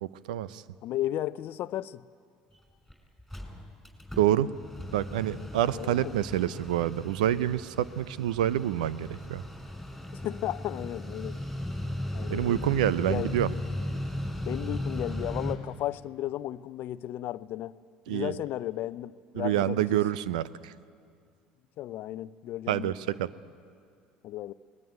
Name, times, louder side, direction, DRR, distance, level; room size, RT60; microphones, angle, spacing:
voice 1, 0.0-0.6 4.2-4.5 4.9-9.4 12.3-13.5 18.1-18.4 19.3-20.7 22.7-23.3, right 12 dB, 80° right, 0.6 m, -27 dB
voice 2, 0.8-2.0 5.7-6.1 10.1-11.4 12.1-12.7 13.1-13.3 14.5-17.7 18.1-19.8 21.8-22.9 24.2-24.5, left 13 dB, 55° left, 0.6 m, -34 dB
Mechanical fan, 2.5-2.6 2.9-3.0 3.2-15.5, left 1 dB, ahead, 5.9 m, -37 dB
23.0 x 20.0 x 9.1 m
hypercardioid pair, 65°, 4 cm